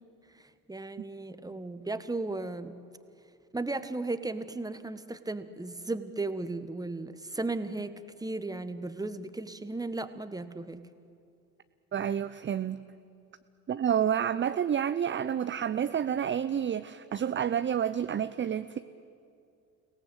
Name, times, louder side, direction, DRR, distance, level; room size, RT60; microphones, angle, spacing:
voice 1, 0.7-2.8 3.5-10.8, right 2 dB, 10° right, 11 dB, 1.5 m, -35 dB
voice 2, 11.9-12.8 13.7-18.8, right 9 dB, 25° right, 11 dB, 0.7 m, -29 dB
30.0 x 18.0 x 8.4 m, 2.5 s
hypercardioid pair, 60°, 44 cm